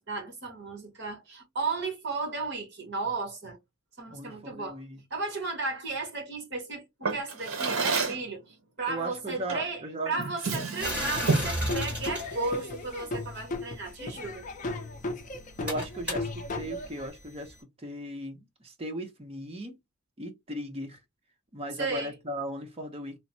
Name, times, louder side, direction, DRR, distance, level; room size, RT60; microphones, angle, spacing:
voice 1, 0.0-3.6 4.0-4.8 5.1-14.4 21.8-22.1, right 3 dB, 50° right, 1.1 m, -34 dB
voice 2, 4.1-5.0 8.9-10.1 10.5-10.6 10.9-11.2 15.6-19.8 20.2-21.0 21.5-23.2, right 1 dB, 25° right, 0.6 m, -37 dB
Drawer open or close, 7.0-8.3 9.5-9.7 10.1-11.6, right 4 dB, 65° right, 0.8 m, -29 dB
sound 1, 10.8-13.5 14.4-17.6, equal, 5° right, 1.3 m, -36 dB
Laughter / Drum, 11.1-17.1, left 2 dB, 35° left, 0.4 m, -36 dB
3.2 x 2.0 x 2.6 m
head